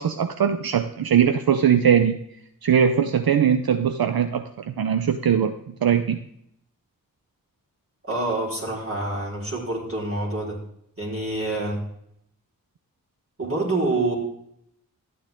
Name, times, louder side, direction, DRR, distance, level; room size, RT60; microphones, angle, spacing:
voice 1, 0.0-2.2 2.6-5.6 5.8-6.2, right 8 dB, 80° right, 8 dB, 0.7 m, -20 dB
voice 2, 8.0-10.6 11.0-11.8 13.4-14.1, right 2 dB, 40° right, -3 dB, 4.6 m, -26 dB
13.0 x 9.5 x 3.7 m, 0.74 s
cardioid pair, 45°, 36 cm